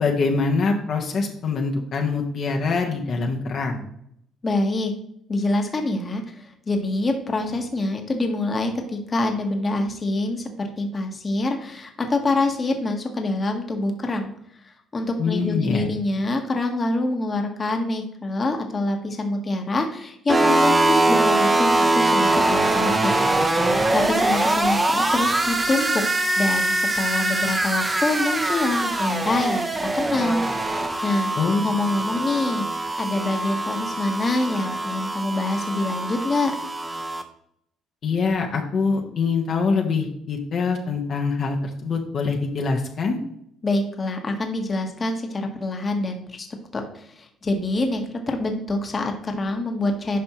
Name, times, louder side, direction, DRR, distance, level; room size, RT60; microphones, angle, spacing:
voice 1, 0.0-3.8 15.2-15.8 31.4-31.6 38.0-41.6 41.8-43.2, left 4 dB, 55° left, 1 dB, 1.2 m, -24 dB
voice 2, 4.4-4.9 5.3-14.3 14.7-23.1 23.9-26.0 26.4-29.6 29.9-30.4 30.7-31.3 31.6-32.6 33.0-36.5 43.6-46.5 46.7-50.2, left 2 dB, 30° left, 4 dB, 1.3 m, -25 dB
sound 1, 20.3-37.2, right 2 dB, 20° right, 1.0 m, -23 dB
9.4 x 5.3 x 3.1 m, 0.71 s
supercardioid pair, 80°, 0 cm